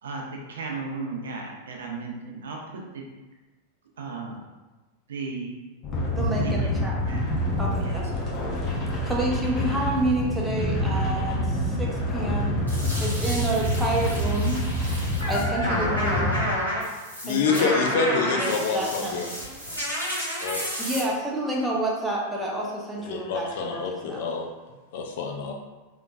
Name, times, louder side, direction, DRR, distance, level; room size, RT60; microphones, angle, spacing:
voice 1, 0.0-3.1 4.0-4.4 5.1-5.6 6.3-7.3 7.6-8.0, right 3 dB, 65° right, 0 dB, 0.5 m, -35 dB
sound 1, 5.8-16.4, left 1 dB, 30° left, 0.8 m, -27 dB
voice 2, 6.1-6.9 7.6-8.3 9.0-12.6 13.0-14.6 15.3-16.3 17.3-17.9 18.2-19.3 20.8-24.3, right 2 dB, 5° right, -4 dB, 0.8 m, -29 dB
sound 2, 12.7-21.0, equal, 85° left, 1.2 m, -30 dB
voice 3, 17.2-19.3 20.4-20.6 23.1-25.5, left 5 dB, 55° left, 3 dB, 0.4 m, -27 dB
3.4 x 2.9 x 2.3 m, 1.2 s
figure-of-eight pair, 90°, 0 cm